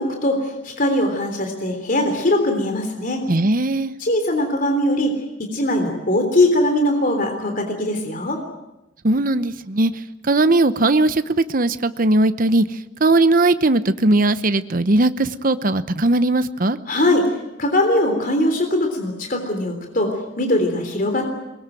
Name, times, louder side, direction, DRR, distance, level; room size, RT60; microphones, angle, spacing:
voice 1, 0.0-3.2 4.0-8.4 16.9-17.3 17.6-21.3, left 1 dB, 45° left, 4 dB, 3.5 m, -21 dB
voice 2, 3.3-3.9 9.0-9.9 10.2-12.6 13.0-16.8, right 2 dB, 45° right, 12 dB, 0.9 m, -18 dB
22.5 x 21.0 x 9.2 m, 0.94 s
head